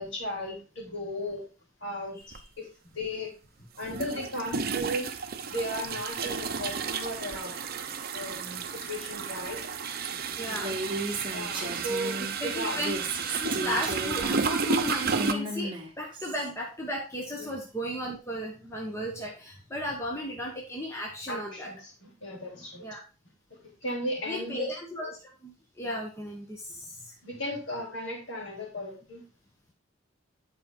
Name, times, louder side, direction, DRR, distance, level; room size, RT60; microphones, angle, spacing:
voice 1, 0.0-1.4 1.8-2.2 2.6-3.3 3.8-5.2 5.5-7.6 8.1-9.6 10.1-10.4 11.3-12.2 12.4-12.8 17.4-17.5 21.3-23.0 23.6-24.7 27.2-29.2, equal, 60° left, -1 dB, 3.3 m, -36 dB
sound 1, 2.3-2.4 3.8-15.3, right 5 dB, 45° right, 0.6 m, -32 dB
voice 2, 10.4-10.8 12.4-13.0 13.4-15.7 16.0-21.7 22.8-23.0 24.3-25.2 25.4-27.1, equal, 15° left, -1 dB, 1.1 m, -35 dB
Female speech woman speaking, 10.5-12.3 12.7-16.5, right 2 dB, 25° right, 1.3 m, -35 dB
9.6 x 4.5 x 3.8 m, 0.35 s
head